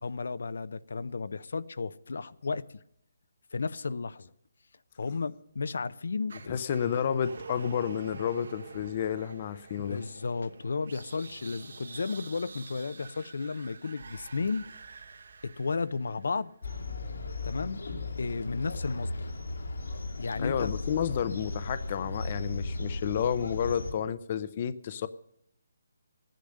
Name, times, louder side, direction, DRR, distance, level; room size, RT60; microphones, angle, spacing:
voice 1, 0.0-2.6 3.5-4.3 5.0-6.6 9.8-14.7 15.4-16.5 17.4-17.8 18.2-19.3 20.2-20.7, left 4 dB, 70° left, 0.6 m, -33 dB
sound 1, 6.3-16.5, right 4 dB, 70° right, 2.0 m, -48 dB
voice 2, 6.5-10.0 20.4-25.1, left 8 dB, 30° left, 0.6 m, -31 dB
sound 2, 16.6-23.9, left 2 dB, 90° left, 2.6 m, -36 dB
14.5 x 10.0 x 6.5 m
hypercardioid pair, 175°, 0 cm